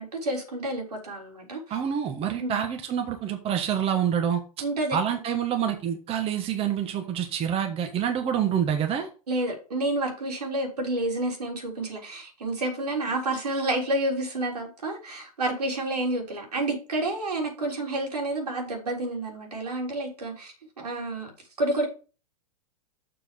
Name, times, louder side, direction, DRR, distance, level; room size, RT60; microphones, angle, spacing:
voice 1, 0.0-1.8 2.4-2.6 4.6-5.0 9.3-21.3 21.6-21.9, right 2 dB, 85° right, 3.8 m, -29 dB
voice 2, 1.7-4.4 4.9-9.1, right 8 dB, 30° right, 1.4 m, -27 dB
7.0 x 5.8 x 5.2 m
hypercardioid pair, 110°, 20 cm